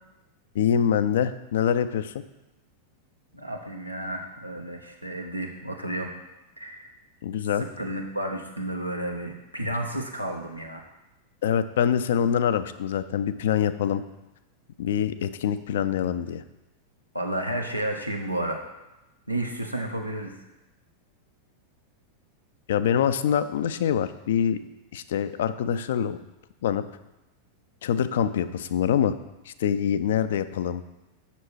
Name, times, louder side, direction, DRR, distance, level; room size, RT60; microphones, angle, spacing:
voice 1, 0.5-2.2 7.2-7.6 11.4-14.0 14.8-16.4 22.7-24.6 24.9-26.2 26.6-26.8 27.8-29.1 29.5-30.8, left 8 dB, 60° left, 12 dB, 0.4 m, -25 dB
voice 2, 3.3-6.1 6.6-6.9 7.6-10.8 17.1-18.6 19.3-20.3, right 1 dB, 90° right, 2 dB, 0.9 m, -31 dB
6.9 x 6.1 x 4.7 m, 0.99 s
figure-of-eight pair, 90°, 0 cm